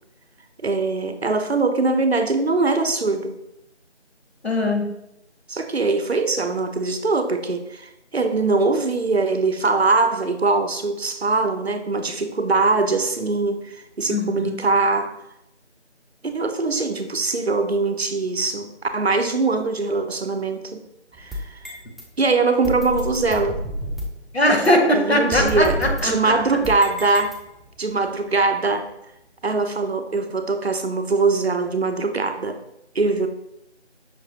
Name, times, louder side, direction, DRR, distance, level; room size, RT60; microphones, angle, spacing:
voice 1, 0.6-3.4 5.5-15.1 16.2-20.8 21.2-21.6 22.2-23.6 24.9-27.4 27.8-28.9 29.4-32.6 32.9-33.3, right 3 dB, 65° right, 8 dB, 0.5 m, -22 dB
voice 2, 4.4-4.9 14.1-14.5 24.3-26.3, left 1 dB, 60° left, 2 dB, 1.0 m, -20 dB
sound 1, 21.1-22.0 22.6-24.2 24.6-24.7 25.3-27.8, equal, ahead, 0.4 m, -30 dB
5.7 x 2.2 x 2.8 m, 0.82 s
figure-of-eight pair, 180°, 35 cm